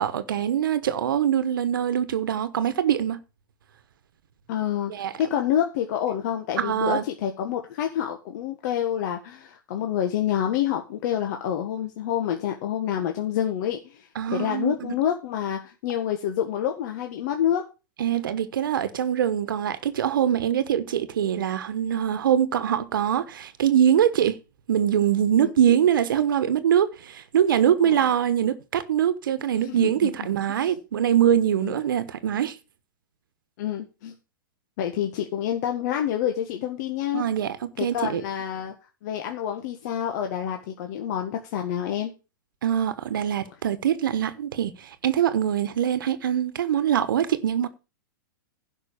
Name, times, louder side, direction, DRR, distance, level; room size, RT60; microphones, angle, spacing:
voice 1, 0.0-3.2 4.9-5.1 6.6-7.0 14.1-14.9 18.0-24.4 24.7-32.6 37.1-38.2 42.6-47.7, right 9 dB, 75° right, 1.1 m, -23 dB
voice 2, 4.5-17.6 25.3-25.5 27.8-28.1 29.7-30.1 30.6-30.7 31.6-31.8 33.6-34.1 34.8-37.2 37.8-38.7 39.0-42.1, left 10 dB, 55° left, 1.6 m, -28 dB
11.5 x 5.5 x 6.9 m
hypercardioid pair, 125°, 11 cm